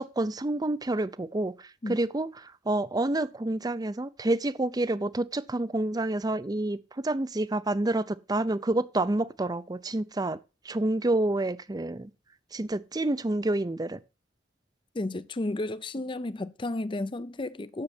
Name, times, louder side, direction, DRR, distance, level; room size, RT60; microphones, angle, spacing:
voice 1, 0.0-10.4 10.6-12.1 12.5-14.0, right 2 dB, 20° right, 0.5 m, -28 dB
voice 2, 14.9-17.8, left 2 dB, 30° left, 0.5 m, -32 dB
9.8 x 6.7 x 6.0 m
head